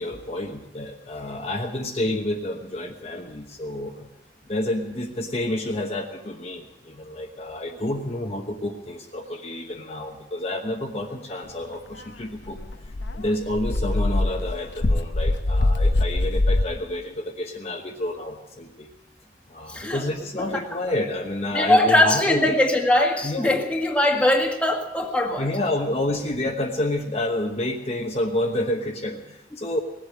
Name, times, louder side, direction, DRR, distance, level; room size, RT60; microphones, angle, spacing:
voice 1, 0.0-4.1 4.5-12.6 13.1-18.9 19.5-22.4 23.2-23.5 25.4-29.8, left 1 dB, 35° left, 1 dB, 1.1 m, -29 dB
Dog, 12.0-12.1 12.5-16.6, left 2 dB, 80° left, 0.8 m, -23 dB
voice 2, 19.7-20.1 20.4-20.5 21.5-25.6, left 1 dB, 5° left, 1 dB, 1.7 m, -21 dB
19.5 x 8.2 x 8.6 m, 0.98 s
head